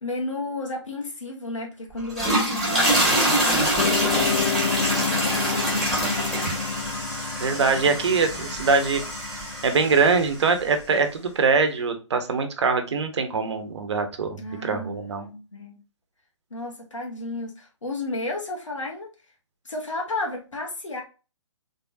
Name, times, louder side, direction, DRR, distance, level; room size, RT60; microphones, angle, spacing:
voice 1, 0.0-4.6 5.1-6.3 14.4-15.8 16.5-19.1 19.6-21.0, left 2 dB, 85° left, 1 dB, 1.6 m, -33 dB
sound 1, 2.0-10.3, right 1 dB, ahead, 2.1 m, -25 dB
Piano, 3.8-10.3, left 7 dB, 65° left, 0.4 m, -30 dB
voice 2, 7.4-9.0 9.6-15.2, right 4 dB, 65° right, 7 dB, 1.1 m, -23 dB
3.6 x 3.6 x 2.7 m, 0.31 s
hypercardioid pair, 140°, 16 cm